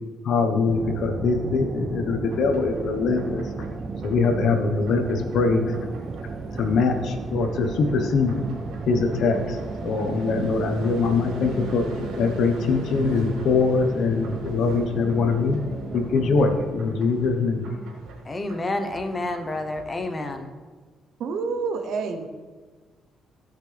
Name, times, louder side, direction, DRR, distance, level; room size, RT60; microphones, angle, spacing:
voice 1, 0.2-3.4 4.0-5.7 6.6-8.4 8.9-9.6 9.8-11.8 12.2-15.6 15.9-17.7, left 4 dB, 70° left, 6 dB, 1.2 m, -23 dB
sound 1, 0.7-16.6, right 4 dB, 40° right, 0.6 m, -35 dB
sound 2, 2.3-20.4, right 1 dB, 90° right, 3.2 m, -41 dB
voice 2, 18.2-20.5, left 2 dB, 25° left, 7 dB, 1.1 m, -29 dB
voice 3, 21.2-22.3, right 4 dB, 70° right, 7 dB, 1.0 m, -28 dB
16.5 x 5.9 x 3.5 m, 1.4 s
cardioid pair, 90°, 0 cm